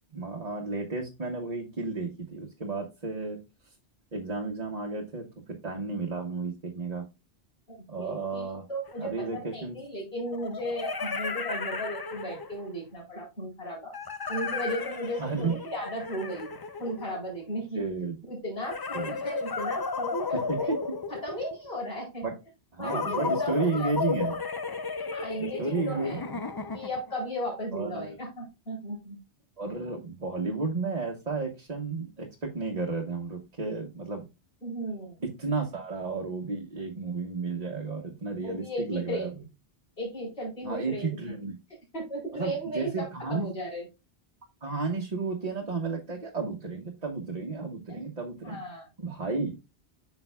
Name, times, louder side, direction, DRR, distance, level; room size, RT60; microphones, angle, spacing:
voice 1, 0.1-3.4 4.1-5.2 5.6-7.1 7.9-8.6 9.0-9.8 15.2-15.6 17.7-18.2 18.9-19.1 20.3-20.8 22.2-22.3 22.7-24.3 25.4-26.4 27.7-28.2 29.6-34.3 35.4-39.3 40.6-41.5 42.3-43.5 44.6-48.6 49.0-49.5, right 4 dB, 35° right, 0 dB, 1.2 m, -32 dB
voice 2, 7.7-13.9 14.3-17.8 18.2-20.7 21.1-22.2 22.8-23.9 25.1-26.2 26.7-29.2 34.6-35.2 38.4-39.3 40.0-41.3 41.9-43.9 47.9-48.0 48.4-48.9, equal, 65° left, -4 dB, 4.5 m, -35 dB
sound 1, 8.9-9.0 10.3-12.7 13.9-17.4 18.6-21.7 22.8-27.1, left 4 dB, 35° left, 0.3 m, -34 dB
8.6 x 5.9 x 2.3 m, 0.26 s
omnidirectional pair, 1.1 m